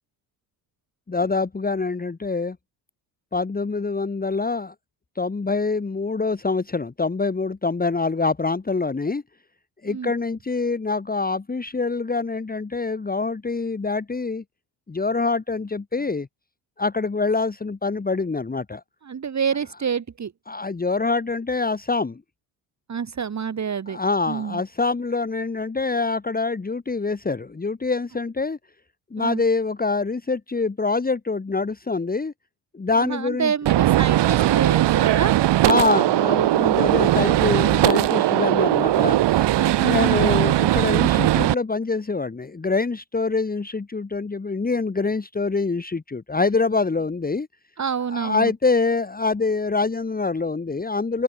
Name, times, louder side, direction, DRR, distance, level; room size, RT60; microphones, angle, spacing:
voice 1, 1.1-2.6 3.3-4.7 5.2-9.2 9.8-14.4 14.9-16.3 16.8-18.8 20.5-22.2 23.9-28.6 29.1-32.3 32.7-33.5 34.4-34.5 35.7-39.5 39.8-47.5 48.1-51.2, left 3 dB, 20° left, 2.0 m, -25 dB
voice 2, 19.0-20.3 22.9-24.0 24.3-24.6 29.2-29.4 33.0-35.4 39.6-40.2 47.8-48.5, right 7 dB, 35° right, 2.4 m, -27 dB
Gunshot gunfire, 33.7-41.5, right 14 dB, 55° right, 1.6 m, -19 dB
open air
hypercardioid pair, 65°, 49 cm